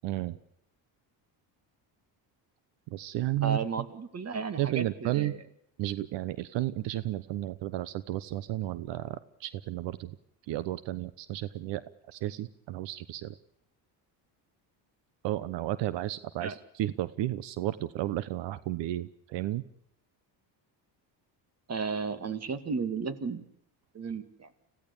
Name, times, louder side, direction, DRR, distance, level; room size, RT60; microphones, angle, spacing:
voice 1, 0.0-0.4 2.9-3.6 4.6-5.3 5.8-10.2 10.5-11.8 12.1-13.4 15.2-19.6, right 15 dB, 80° right, 17 dB, 1.0 m, -33 dB
voice 2, 3.4-5.4 16.4-16.5 21.7-23.4 23.9-24.5, right 5 dB, 35° right, 13 dB, 2.2 m, -34 dB
26.5 x 16.5 x 8.5 m, 0.74 s
cardioid pair, 110°, 43 cm